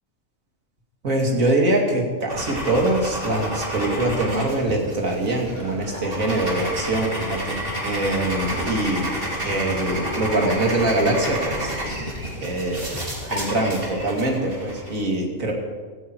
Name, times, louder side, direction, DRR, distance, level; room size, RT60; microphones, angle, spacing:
voice 1, 1.0-9.1 9.4-11.7 12.4-12.9 13.3-15.5, right 2 dB, 85° right, 0 dB, 3.0 m, -23 dB
sound 1, 2.3-14.9, equal, 45° right, 3.4 m, -30 dB
17.0 x 14.5 x 4.7 m, 1.5 s
omnidirectional pair, 1.4 m